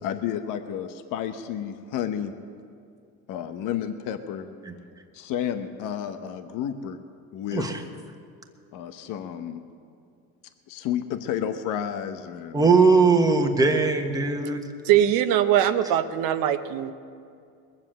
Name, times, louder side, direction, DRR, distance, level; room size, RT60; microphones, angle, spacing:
voice 1, 0.0-2.3 3.3-4.5 5.1-7.0 7.3-7.7 8.7-9.6 10.7-12.7, left 9 dB, 65° left, 8 dB, 1.0 m, -31 dB
voice 2, 12.5-14.6, right 4 dB, 10° right, 3 dB, 1.3 m, -19 dB
voice 3, 14.8-16.9, right 11 dB, 75° right, 10 dB, 0.9 m, -21 dB
21.5 x 7.4 x 7.5 m, 2.4 s
cardioid pair, 115°, 34 cm